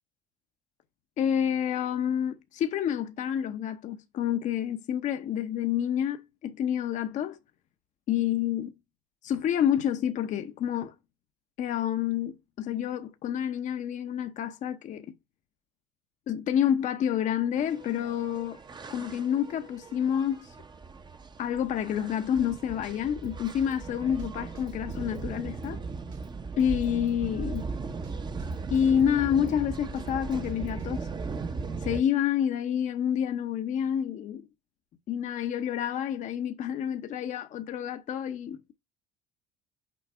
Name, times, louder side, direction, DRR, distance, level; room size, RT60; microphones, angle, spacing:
voice 1, 1.2-7.4 8.1-8.7 9.2-10.9 11.6-15.1 16.3-18.6 18.9-20.5 21.4-25.8 26.6-27.6 28.7-31.1 31.8-34.5 35.1-38.8, left 9 dB, 55° left, 0.8 m, -28 dB
sound 1, 17.6-32.0, right 4 dB, 30° right, 0.8 m, -38 dB
Drum kit, 23.2-23.8 24.2-24.3 24.6-25.7 26.1-26.3 26.6-27.6 28.0-28.1 28.4-29.6 30.0-30.9, right 3 dB, 70° right, 2.0 m, -50 dB
6.2 x 3.9 x 4.4 m
supercardioid pair, 75°, 15 cm